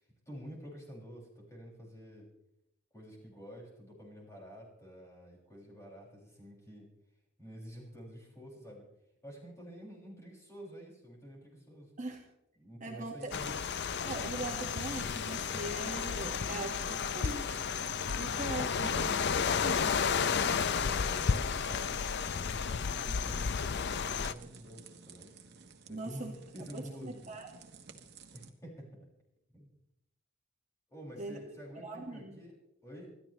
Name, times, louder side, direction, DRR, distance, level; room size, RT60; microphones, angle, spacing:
voice 1, 0.0-2.3 2.9-6.9 7.4-8.8 9.2-11.9 12.6-13.6 18.8-19.1 20.5-25.3 25.9-26.3 26.5-27.2 28.3-29.1 29.5-29.7 30.9-32.5 32.8-33.1, equal, 15° left, -3 dB, 6.2 m, -49 dB
voice 2, 12.8-13.5 14.0-17.7 18.2-19.1 19.6-20.0 25.9-26.3 26.7-27.5 31.2-31.4 31.7-32.4, right 2 dB, 40° right, 0 dB, 1.8 m, -41 dB
Campfire crackling - Loop, 13.2-28.5, right 5 dB, 55° right, 1.5 m, -55 dB
sound 1, 13.3-24.3, left 6 dB, 55° left, 0.6 m, -32 dB
27.0 x 13.0 x 3.2 m, 0.85 s
head